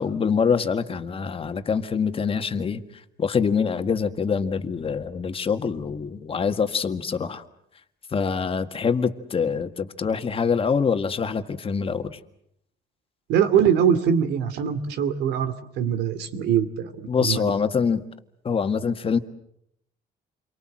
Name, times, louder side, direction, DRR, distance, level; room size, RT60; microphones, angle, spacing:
voice 1, 0.0-2.8 3.2-7.4 8.1-12.2 17.1-18.0 18.4-19.2, left 6 dB, 35° left, 8 dB, 1.8 m, -25 dB
voice 2, 13.3-16.9 17.2-17.5, right 8 dB, 85° right, 11 dB, 2.6 m, -22 dB
29.0 x 23.5 x 7.7 m, 0.73 s
cardioid pair, 110°, 17 cm